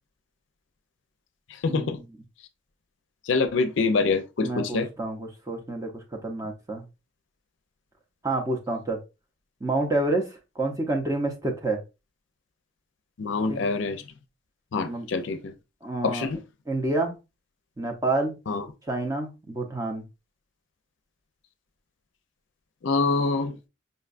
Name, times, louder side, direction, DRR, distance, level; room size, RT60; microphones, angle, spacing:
voice 1, 1.6-2.0 3.3-4.9 13.2-14.0 14.7-15.5 16.0-16.4 18.5-18.7 22.8-23.6, left 4 dB, 70° left, 0.5 m, -25 dB
voice 2, 4.4-6.8 8.2-9.0 9.6-10.3 10.6-11.8 13.5-13.6 14.9-15.1 15.8-16.3 16.7-17.2 17.8-18.4 18.9-20.0, right 2 dB, 15° right, 0.6 m, -28 dB
5.3 x 2.2 x 2.4 m
head